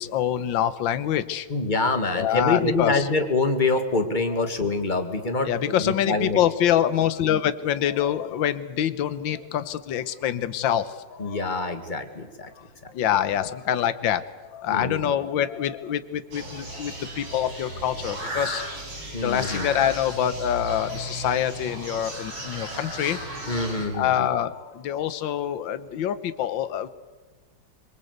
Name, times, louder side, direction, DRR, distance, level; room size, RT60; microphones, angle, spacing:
voice 1, 0.0-1.5 2.1-3.1 5.4-11.4 12.9-14.2 14.5-18.7 19.2-23.2 23.9-26.9, left 10 dB, 70° left, 13 dB, 1.7 m, -25 dB
voice 2, 1.5-6.4 11.2-12.5 14.7-15.1 19.1-19.7 23.5-24.3, left 3 dB, 25° left, 7 dB, 2.0 m, -25 dB
sound 1, 16.3-23.9, right 1 dB, 85° right, 6.0 m, -35 dB
24.5 x 23.0 x 8.1 m, 1.3 s
omnidirectional pair, 2.2 m